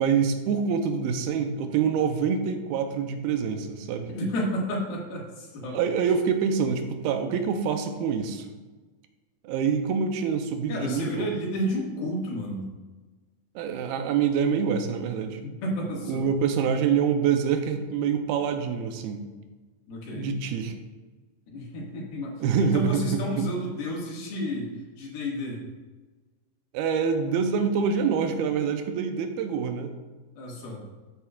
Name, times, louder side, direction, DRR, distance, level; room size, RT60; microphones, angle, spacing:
voice 1, 0.0-4.1 5.7-8.5 9.4-11.3 13.6-15.4 16.1-19.2 20.1-20.7 22.4-23.5 26.7-29.9, right 6 dB, 90° right, 6 dB, 2.7 m, -26 dB
voice 2, 4.1-5.8 10.7-12.6 15.4-16.3 19.9-20.3 21.5-25.6 30.4-30.8, equal, 80° left, -3 dB, 3.9 m, -31 dB
12.5 x 8.3 x 2.5 m, 1.3 s
omnidirectional pair, 4.3 m